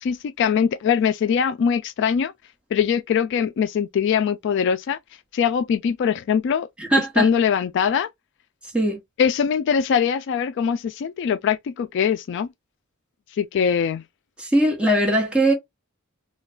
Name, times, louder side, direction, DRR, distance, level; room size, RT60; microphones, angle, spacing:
voice 1, 0.0-2.3 2.7-5.0 5.3-6.7 7.2-8.1 9.2-12.5 13.3-14.0, left 7 dB, 60° left, 0.3 m, -22 dB
voice 2, 6.8-7.3 8.7-9.0 14.4-15.5, right 1 dB, 5° right, 1.1 m, -20 dB
3.1 x 2.3 x 3.6 m
head